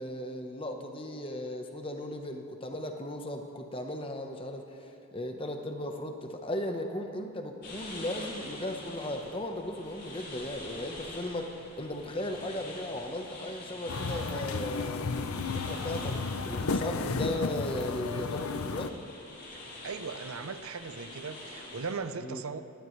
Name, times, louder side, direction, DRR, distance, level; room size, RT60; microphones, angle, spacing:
voice 1, 0.0-16.2 16.4-19.0 22.2-22.4, left 1 dB, 25° left, 4 dB, 1.0 m, -36 dB
sound 1, 7.6-21.9, left 2 dB, 50° left, 4.7 m, -46 dB
sound 2, 13.9-18.9, left 4 dB, 85° left, 0.6 m, -33 dB
voice 2, 19.8-22.6, right 5 dB, 80° right, 11 dB, 0.7 m, -38 dB
20.5 x 17.5 x 3.3 m, 2.6 s
head